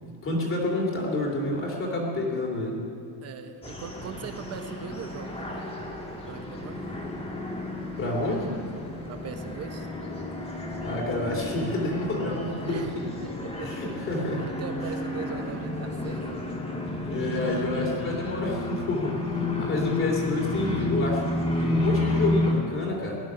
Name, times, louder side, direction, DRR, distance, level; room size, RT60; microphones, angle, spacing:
voice 1, 0.0-2.8 8.0-8.6 10.8-13.1 13.6-14.5 17.1-19.2 19.6-23.2, left 2 dB, 30° left, -1 dB, 2.7 m, -29 dB
voice 2, 3.2-5.6 6.3-6.8 9.1-9.9 12.7-12.9 13.2-13.7 14.0-16.4, right 6 dB, 35° right, 7 dB, 1.1 m, -40 dB
sound 1, 3.6-22.5, left 2 dB, 15° left, 1.8 m, -31 dB
18.5 x 11.5 x 6.2 m, 2.5 s
cardioid pair, 170°, 42 cm